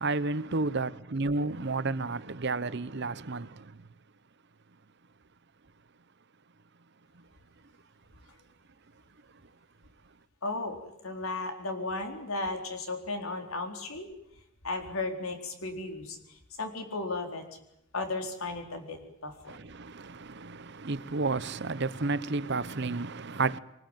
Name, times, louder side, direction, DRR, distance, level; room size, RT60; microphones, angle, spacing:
voice 1, 0.0-3.5 20.4-20.5 20.8-23.6, right 3 dB, 55° right, 0.9 m, -30 dB
voice 2, 10.4-14.1 14.6-17.6 17.9-19.6, left 2 dB, 90° left, 4.3 m, -35 dB
24.0 x 20.0 x 9.1 m
head